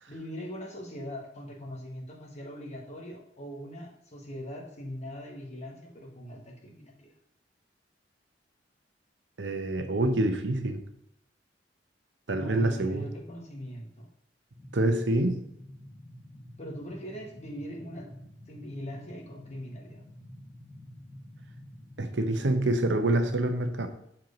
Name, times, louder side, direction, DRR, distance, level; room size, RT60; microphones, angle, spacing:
voice 1, 0.1-7.1 12.3-14.1 15.3-15.4 16.6-18.1 18.5-20.1, equal, 40° left, 0 dB, 1.6 m, -41 dB
voice 2, 9.4-10.8 12.3-13.0 14.7-15.4 22.0-23.9, right 1 dB, 85° right, 7 dB, 0.9 m, -26 dB
sound 1, 14.5-23.3, equal, 10° left, 2.8 m, -49 dB
7.5 x 4.6 x 5.1 m, 0.73 s
head